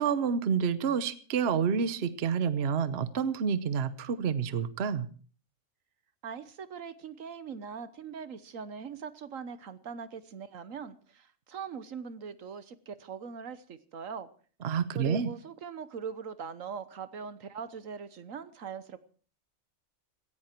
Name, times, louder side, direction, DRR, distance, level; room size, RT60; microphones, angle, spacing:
voice 1, 0.0-5.1 14.6-15.3, right 7 dB, 50° right, 13 dB, 1.1 m, -28 dB
voice 2, 6.2-14.3 14.9-19.0, right 6 dB, 70° right, 13 dB, 1.4 m, -41 dB
17.5 x 15.5 x 4.5 m, 0.40 s
omnidirectional pair, 1.4 m